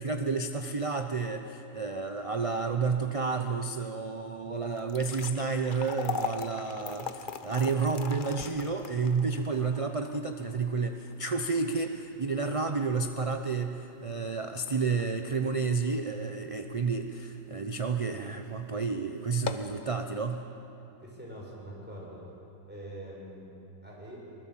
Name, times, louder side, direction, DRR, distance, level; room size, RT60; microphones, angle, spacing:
voice 1, 0.0-20.4, right 4 dB, 35° right, 6 dB, 0.5 m, -31 dB
sound 1, 4.7-17.0 17.4-17.5 18.2-18.4 18.7-18.8 19.3-19.8, left 5 dB, 40° left, 0.9 m, -40 dB
voice 2, 21.0-22.2 22.7-23.5 23.8-24.2, right 1 dB, 5° right, -4 dB, 6.1 m, -44 dB
24.0 x 21.0 x 7.5 m, 2.9 s
omnidirectional pair, 1.7 m